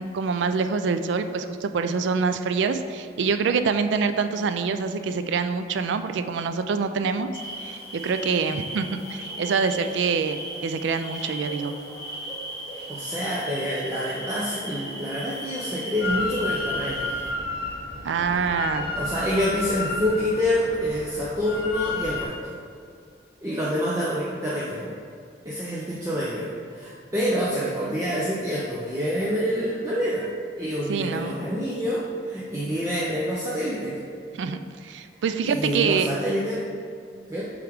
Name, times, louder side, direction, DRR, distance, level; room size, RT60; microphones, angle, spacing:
voice 1, 0.0-7.3 7.6-11.7 18.0-18.9 30.9-31.3 34.4-36.1, right 5 dB, 80° right, 9 dB, 0.3 m, -25 dB
sound 1, 7.3-17.3, right 1 dB, 20° left, 1.0 m, -37 dB
voice 2, 12.9-17.1 18.7-22.5 23.4-24.9 25.4-30.3 30.5-34.0 35.4-36.7 37.3-37.5, equal, 15° right, -7 dB, 0.6 m, -27 dB
Drill, 16.0-22.3, left 3 dB, 50° left, 0.7 m, -31 dB
7.7 x 3.6 x 3.5 m, 2.3 s
head